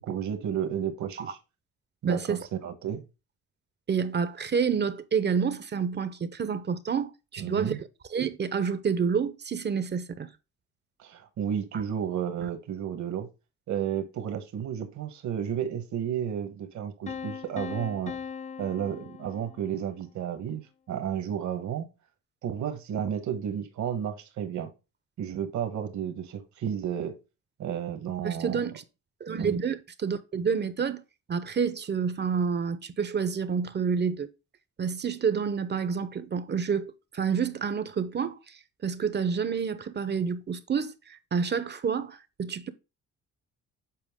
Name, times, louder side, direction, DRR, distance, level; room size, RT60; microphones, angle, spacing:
voice 1, 0.0-1.4 2.0-3.0 7.4-7.8 11.0-13.3 13.7-18.1 18.6-20.6 20.9-21.9 22.4-24.7 25.2-27.1 27.6-28.6 29.4-29.6, right 9 dB, 70° right, 1.3 m, -32 dB
voice 2, 2.0-2.4 3.9-7.7 8.1-10.3 28.2-28.8 29.2-31.0 31.3-34.3 34.8-42.7, right 6 dB, 35° right, 0.7 m, -29 dB
Piano, 17.1-20.0, left 6 dB, 25° left, 0.4 m, -40 dB
7.7 x 4.3 x 3.5 m
cardioid pair, 90°, 30 cm